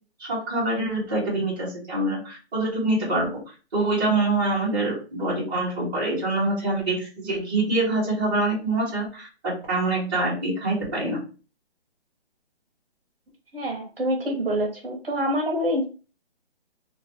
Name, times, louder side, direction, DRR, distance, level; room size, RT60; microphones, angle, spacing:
voice 1, 0.2-3.3 3.7-11.2, right 2 dB, 20° right, -9 dB, 1.2 m, -25 dB
voice 2, 13.5-15.8, equal, 60° right, 0 dB, 1.1 m, -26 dB
3.0 x 2.4 x 2.9 m, 0.35 s
hypercardioid pair, 170°, 33 cm